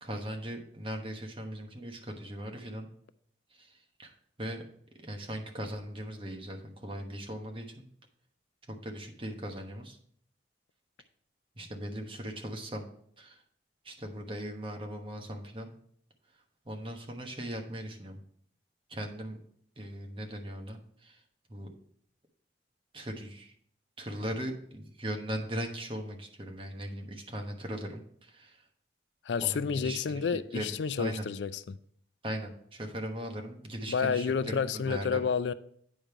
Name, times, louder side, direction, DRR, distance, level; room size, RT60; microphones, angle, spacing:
voice 1, 0.0-2.9 3.6-4.6 5.0-7.9 8.7-10.0 11.6-12.9 13.2-13.4 13.8-15.7 16.6-18.2 18.9-19.4 19.8-21.2 21.5-21.7 22.9-23.5 24.0-28.6 29.4-30.3 30.5-31.3 32.2-35.2, equal, 30° right, 1.1 m, -39 dB
voice 2, 29.3-31.8 33.9-35.5, left 6 dB, 80° left, 0.4 m, -30 dB
8.7 x 5.3 x 4.6 m
head